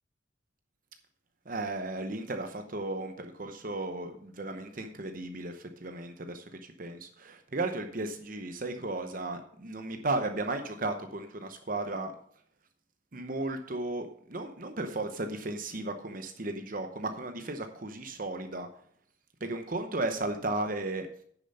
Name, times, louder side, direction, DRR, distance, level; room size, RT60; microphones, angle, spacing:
voice 1, 1.5-12.1 13.1-18.7 19.4-21.1, right 2 dB, 45° right, 6 dB, 0.9 m, -35 dB
9.8 x 7.0 x 5.5 m, 0.64 s
head